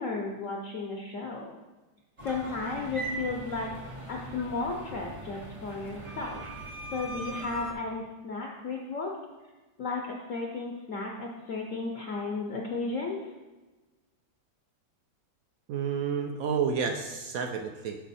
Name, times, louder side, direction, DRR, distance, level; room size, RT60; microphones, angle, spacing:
voice 1, 0.0-1.5 2.2-6.4 6.9-9.1 9.8-13.3, left 3 dB, 65° left, 0 dB, 0.8 m, -34 dB
sound 1, 2.2-7.7, right 1 dB, 50° right, 0.4 m, -40 dB
voice 2, 15.7-18.0, right 6 dB, 80° right, 4 dB, 0.7 m, -30 dB
6.2 x 6.0 x 4.1 m, 1.2 s
omnidirectional pair, 2.1 m